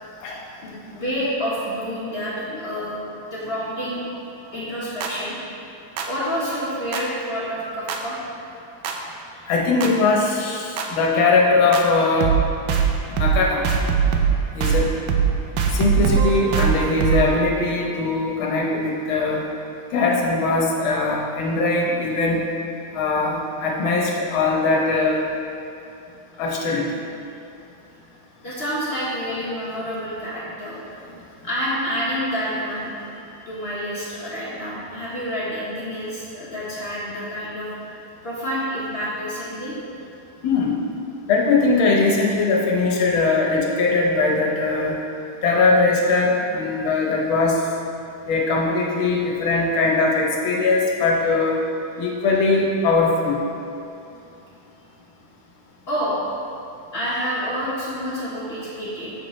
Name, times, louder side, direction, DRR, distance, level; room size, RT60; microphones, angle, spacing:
voice 1, 0.6-3.0 3.3-4.2 4.5-5.3 6.0-8.2 9.3-9.4 28.4-30.9 31.4-32.9 33.5-39.7 55.9-56.2 56.9-59.1, equal, 35° left, -8 dB, 1.3 m, -28 dB
sound 1, 5.0-5.1 6.0-6.1 6.9-7.0 7.9-8.0 8.8-8.9 9.8-9.9 10.8-10.9 11.7-11.8 12.2-12.4 12.7-12.9 13.2-13.4 13.6-14.3 14.6-14.8 15.1-15.3 15.6-17.4, right 7 dB, 70° right, 1.1 m, -20 dB
voice 2, 9.5-12.4 13.1-13.6 14.5-14.9 15.7-19.4 19.9-22.4 22.9-25.2 26.4-26.9 40.4-40.8 41.3-45.0 45.4-47.6 48.3-51.6 52.0-53.4, left 3 dB, 70° left, -1 dB, 1.7 m, -20 dB
7.6 x 7.2 x 3.1 m, 2.6 s
omnidirectional pair, 2.4 m